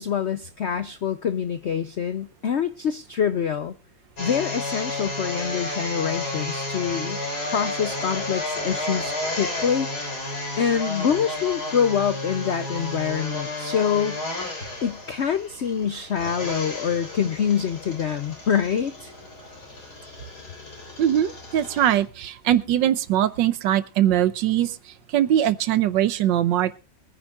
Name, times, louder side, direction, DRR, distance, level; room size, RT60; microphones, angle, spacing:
voice 1, 0.0-3.7 4.2-7.2 7.4-9.9 10.6-14.2 14.8-19.1, left 7 dB, 80° left, 12 dB, 0.6 m, -25 dB
sound 1, 4.2-22.0, left 2 dB, 55° left, 4.2 m, -32 dB
voice 2, 21.0-26.8, right 11 dB, 75° right, 14 dB, 1.4 m, -22 dB
24.0 x 9.9 x 2.4 m, 0.33 s
omnidirectional pair, 2.0 m